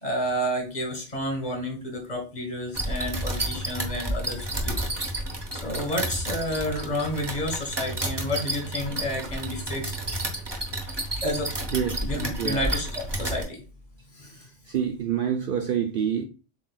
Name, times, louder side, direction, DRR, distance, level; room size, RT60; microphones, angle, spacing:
voice 1, 0.0-4.7 5.6-9.9 11.2-13.6 14.1-14.5, equal, 35° left, 1.4 m, -30 dB
sound 1, 2.7-13.4, right 1 dB, 25° right, 0.9 m, -31 dB
voice 2, 12.4-12.7 14.7-16.2, right 8 dB, 60° right, 0.6 m, -26 dB
7.4 x 2.7 x 2.3 m
omnidirectional pair, 1.2 m